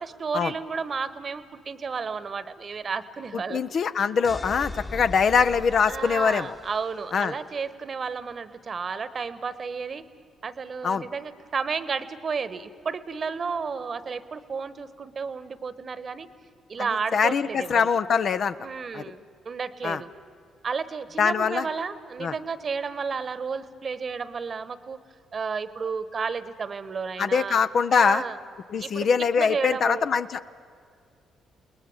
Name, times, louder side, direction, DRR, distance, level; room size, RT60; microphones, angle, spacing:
voice 1, 0.0-3.6 5.9-10.0 10.4-16.3 16.7-17.9 18.6-20.1 20.6-25.0 25.3-27.6 27.9-28.4 28.8-29.1 29.4-30.1, right 5 dB, 45° right, 15 dB, 1.2 m, -32 dB
voice 2, 3.5-6.5 7.1-7.3 10.8-11.1 17.1-18.6 18.9-19.0 19.8-20.0 21.2-21.7 22.2-22.3 27.2-28.2 28.7-30.6, left 6 dB, 55° left, 11 dB, 0.7 m, -23 dB
sound 1, 4.2-7.1, left 2 dB, 25° left, 1.4 m, -39 dB
29.5 x 20.0 x 7.2 m, 2.2 s
hypercardioid pair, 45°, 0 cm